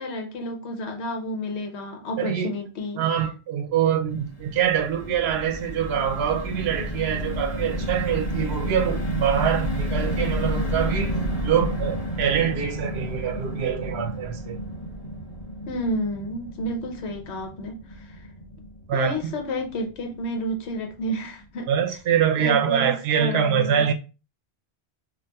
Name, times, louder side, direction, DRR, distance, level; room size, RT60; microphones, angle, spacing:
voice 1, 0.0-3.2 15.7-18.3 18.9-21.7 22.4-23.9, equal, 80° left, 1.0 m, -31 dB
voice 2, 2.2-2.5 3.0-14.6 18.9-19.3 21.7-23.9, right 8 dB, 75° right, 0.8 m, -24 dB
sound 1, 4.1-20.4 20.8-20.9 21.2-21.4, equal, 55° left, 1.4 m, -31 dB
4.0 x 2.4 x 2.2 m
omnidirectional pair, 1.1 m